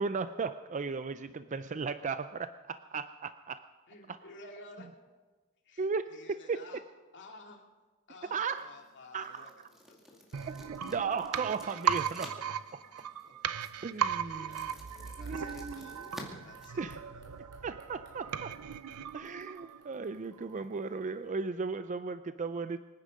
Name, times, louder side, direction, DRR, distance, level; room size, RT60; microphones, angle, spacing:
voice 1, 0.0-3.7 4.1-4.2 5.8-6.6 8.3-8.7 9.1-9.5 10.5-12.3 13.8-14.7 15.2-16.0 16.8-17.0 17.6-18.5 19.1-22.8, right 5 dB, 35° right, 11 dB, 0.4 m, -36 dB
voice 2, 3.9-4.9 5.6-6.8 7.1-7.6 8.1-11.0 12.2-12.4 13.2-13.6 13.9-16.1 16.4-17.7 20.5-20.6, left 2 dB, 55° left, 1 dB, 2.5 m, -54 dB
sound 1, 8.4-17.4, equal, ahead, 2.3 m, -53 dB
sound 2, 10.3-20.0 20.3-20.4, right 8 dB, 80° right, 0.6 m, -37 dB
sound 3, 14.7-21.7 22.0-22.1, right 3 dB, 55° right, 3.1 m, -66 dB
24.5 x 10.0 x 5.1 m, 1.3 s
head